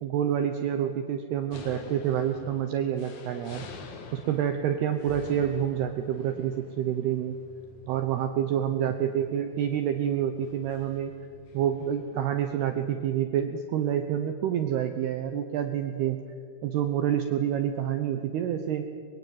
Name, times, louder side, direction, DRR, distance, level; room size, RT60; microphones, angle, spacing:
voice 1, 0.0-3.7 4.1-7.4 7.9-11.1 11.5-16.2 16.6-18.9, right 9 dB, 80° right, 7 dB, 2.3 m, -28 dB
sound 1, 1.5-12.3, left 4 dB, 50° left, 2.3 m, -48 dB
24.5 x 21.5 x 9.3 m, 2.3 s
omnidirectional pair, 6.0 m